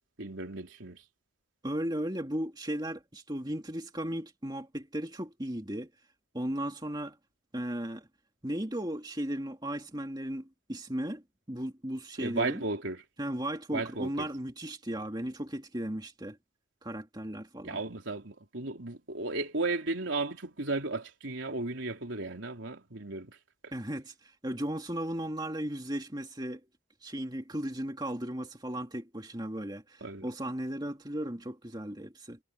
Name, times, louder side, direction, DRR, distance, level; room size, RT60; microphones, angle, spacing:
voice 1, 0.2-1.0 12.2-13.0 13.7-14.3 17.6-23.4 30.0-30.3, right 3 dB, 75° right, 3.5 m, -34 dB
voice 2, 1.6-5.9 6.3-7.2 7.5-8.1 8.4-11.2 11.5-12.6 13.2-16.4 16.8-17.8 23.7-26.6 27.0-32.4, right 1 dB, 20° right, 2.5 m, -36 dB
head